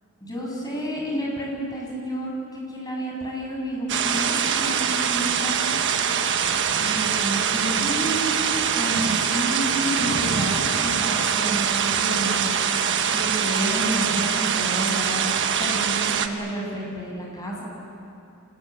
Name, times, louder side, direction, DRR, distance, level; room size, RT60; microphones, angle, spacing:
voice 1, 0.2-5.7 6.8-12.5 13.1-17.6, right 1 dB, 20° left, -3 dB, 7.7 m, -30 dB
sound 1, 3.9-16.3, right 7 dB, 60° right, 1.4 m, -23 dB
27.0 x 20.0 x 9.6 m, 2.6 s
head